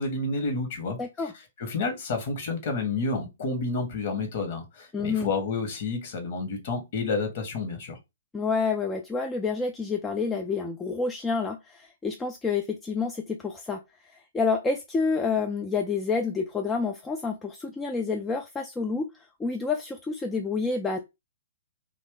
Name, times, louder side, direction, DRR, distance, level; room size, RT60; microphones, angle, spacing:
voice 1, 0.0-1.0 1.6-8.0, left 3 dB, 45° left, 1.1 m, -30 dB
voice 2, 1.0-1.3 4.9-5.3 8.3-13.8 14.3-19.1 19.4-21.0, left 4 dB, 10° left, 0.3 m, -28 dB
2.7 x 2.5 x 3.6 m
figure-of-eight pair, 120°, 0 cm